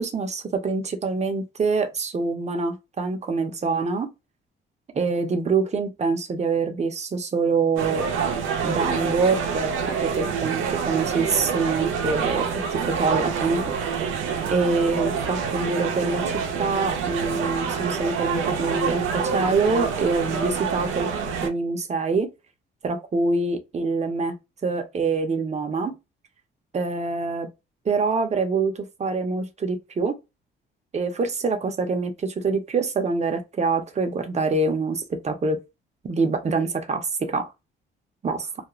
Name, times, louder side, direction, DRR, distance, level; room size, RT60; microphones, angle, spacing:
voice 1, 0.0-4.1 4.9-8.0 8.6-9.7 10.0-14.0 14.5-21.1 21.4-22.3 22.8-24.3 24.6-25.9 26.7-27.5 27.8-30.2 30.9-35.6 36.0-37.5 38.2-38.5, right 4 dB, 35° right, 0.7 m, -25 dB
sound 1, 7.8-21.5, right 6 dB, 90° right, 0.6 m, -27 dB
2.4 x 2.1 x 2.9 m
cardioid pair, 90°, 20 cm